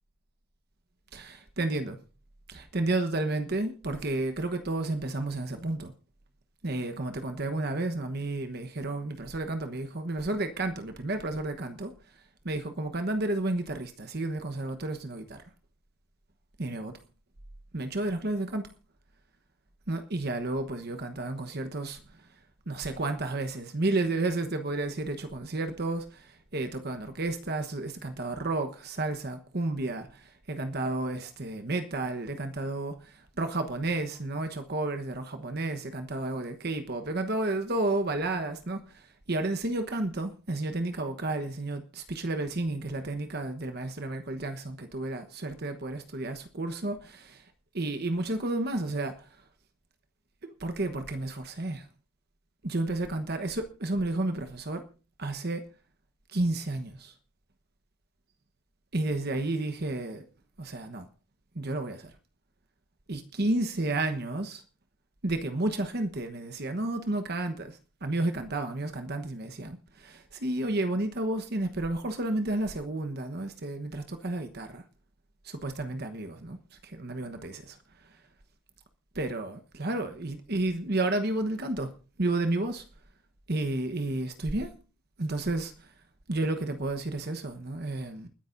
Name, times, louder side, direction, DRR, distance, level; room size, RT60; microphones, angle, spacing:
voice 1, 1.1-2.0 2.5-5.9 6.6-11.9 12.4-15.4 16.6-17.0 17.7-18.7 19.9-22.3 22.7-47.5 47.7-49.3 50.4-51.9 52.6-54.8 55.2-55.7 56.3-57.1 58.9-60.2 60.6-61.1 61.5-62.1 63.1-64.6 65.2-74.8 75.4-76.6 76.8-77.8 79.1-82.8 83.5-84.8 85.2-85.9 86.3-88.3, right 2 dB, 50° right, 1.2 m, -31 dB
29.0 x 10.5 x 2.6 m
head